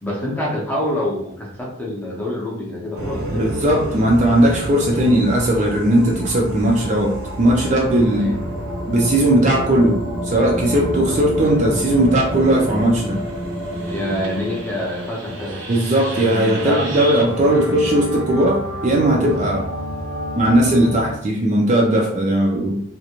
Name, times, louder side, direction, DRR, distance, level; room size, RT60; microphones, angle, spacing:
voice 1, 0.0-3.5 8.2-8.4 13.8-15.6 16.3-16.8 17.5-17.7, left 1 dB, 10° left, -5 dB, 0.6 m, -26 dB
sound 1, 3.0-21.2, equal, 80° right, 0.7 m, -29 dB
voice 2, 3.3-8.3 8.9-13.2 15.7-19.7 20.4-22.8, right 1 dB, 35° right, -1 dB, 0.4 m, -17 dB
2.4 x 2.1 x 2.9 m, 0.66 s
head